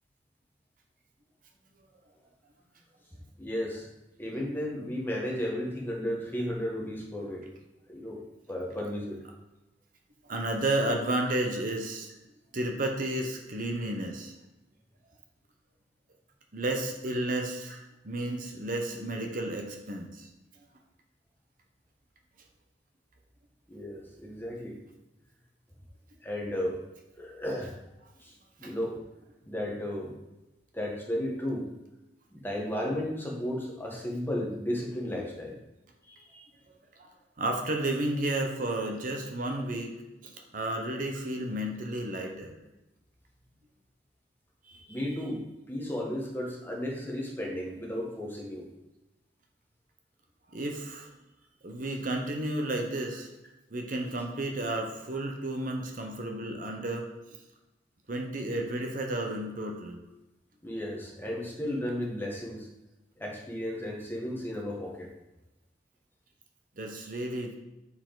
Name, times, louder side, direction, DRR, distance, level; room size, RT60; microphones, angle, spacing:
voice 1, 3.4-3.9 4.2-7.4 7.9-8.2 8.5-9.2 11.2-11.3 23.7-24.8 26.2-26.8 27.2-27.7 28.2-28.3 28.6-29.0 29.5-30.1 30.7-31.7 32.3-35.6 36.1-36.5 44.9-48.7 60.6-62.7 63.2-65.1, left 1 dB, 10° left, -1 dB, 1.3 m, -34 dB
voice 2, 10.2-12.1 12.5-14.3 16.5-17.8 18.0-20.3 28.6-28.7 37.0-40.0 40.2-42.5 44.7-45.0 50.5-51.1 51.6-53.3 53.7-57.1 58.1-60.0 66.8-67.6, right 1 dB, 50° right, 3 dB, 0.9 m, -32 dB
6.9 x 4.7 x 3.9 m, 0.99 s
head